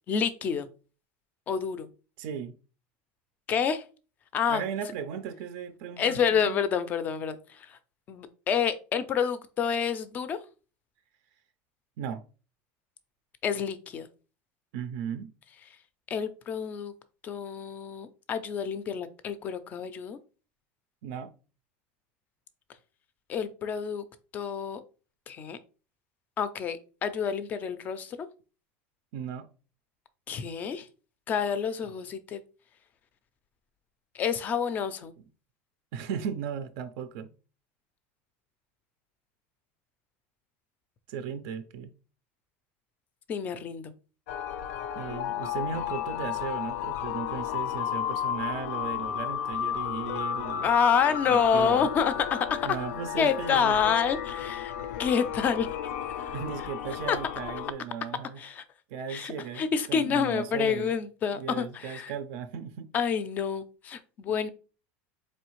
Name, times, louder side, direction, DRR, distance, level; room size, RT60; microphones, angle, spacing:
voice 1, 0.1-0.7 1.5-1.9 3.5-3.8 4.3-4.6 6.0-7.8 8.1-10.4 13.4-14.1 16.1-16.9 17.2-20.2 23.3-24.0 24.3-24.8 25.3-25.6 26.4-28.3 30.3-30.9 31.3-32.4 34.1-35.1 43.3-43.9 50.6-52.6 53.2-55.7 56.2-56.4 57.1-57.2 58.4-58.6 59.1-62.1 62.9-64.5, left 7 dB, 25° left, 0.3 m, -28 dB
voice 2, 2.2-2.6 4.5-6.6 12.0-12.2 14.7-15.3 21.0-21.3 29.1-29.5 35.2-35.3 35.9-37.3 41.1-41.9 44.9-50.7 51.3-51.9 52.6-54.0 56.3-58.4 58.9-60.9 61.3-62.9 64.3-64.5, right 7 dB, 60° right, 0.4 m, -36 dB
sound 1, 44.3-57.7, left 10 dB, 90° left, 0.5 m, -33 dB
4.1 x 3.1 x 3.0 m
cardioid pair, 170°, 7 cm